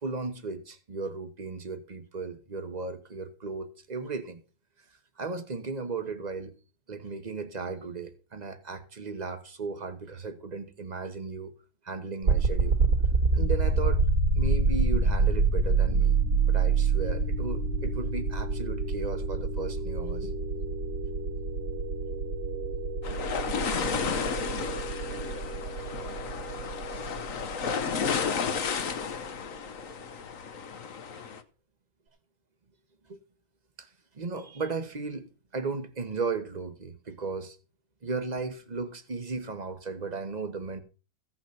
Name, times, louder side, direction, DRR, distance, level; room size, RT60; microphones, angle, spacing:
voice 1, 0.0-4.4 5.2-6.5 6.9-11.5 11.8-12.8 13.3-14.0 14.3-16.2 16.5-20.3 33.1-33.2 33.8-33.9 34.1-37.6 38.0-40.8, right 4 dB, 30° right, 1.2 m, -35 dB
sound 1, 12.2-29.2, right 4 dB, 65° right, 3.1 m, -27 dB
sound 2, 23.0-31.4, left 6 dB, 55° left, 1.3 m, -32 dB
15.5 x 6.1 x 5.8 m
omnidirectional pair, 1.8 m